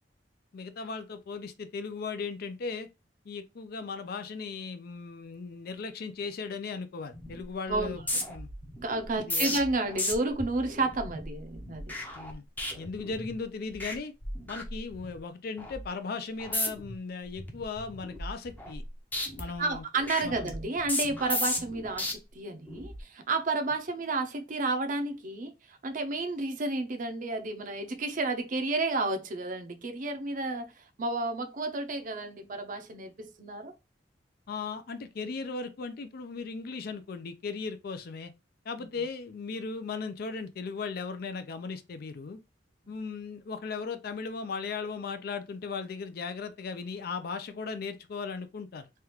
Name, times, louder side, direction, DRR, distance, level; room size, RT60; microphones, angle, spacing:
voice 1, 0.5-2.9 3.3-8.0 8.3-8.5 9.2-9.6 12.1-12.4 12.8-14.1 14.5-18.8 19.4-19.8 20.2-20.5 34.5-38.3 38.7-42.4 42.9-48.9, left 4 dB, 60° left, 0.4 m, -37 dB
sound 1, 7.1-7.4 7.7-13.4 13.7-14.0 14.2-15.2 15.6-15.9 16.4-17.0 17.4-18.9 19.1-22.1 22.7-23.0, left 1 dB, 10° left, 0.6 m, -35 dB
voice 2, 8.8-11.9 19.6-25.5 25.8-30.7 31.0-33.7 38.8-38.9, right 2 dB, 50° right, 0.6 m, -31 dB
3.3 x 2.4 x 2.9 m
head